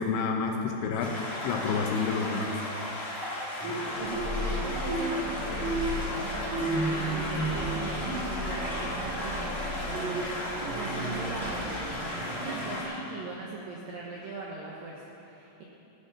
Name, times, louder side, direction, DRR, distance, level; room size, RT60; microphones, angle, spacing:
voice 1, 0.0-2.6, left 5 dB, 75° left, 2 dB, 2.9 m, -29 dB
sound 1, 1.0-12.8, left 1 dB, 25° left, 1.4 m, -35 dB
sound 2, 3.6-12.8, right 2 dB, 45° right, 2.8 m, -34 dB
Purr, 4.0-12.1, left 2 dB, 50° left, 2.8 m, -39 dB
voice 2, 4.0-15.6, right 3 dB, 80° right, -3 dB, 2.0 m, -40 dB
16.5 x 11.5 x 6.0 m, 2.9 s
omnidirectional pair, 5.9 m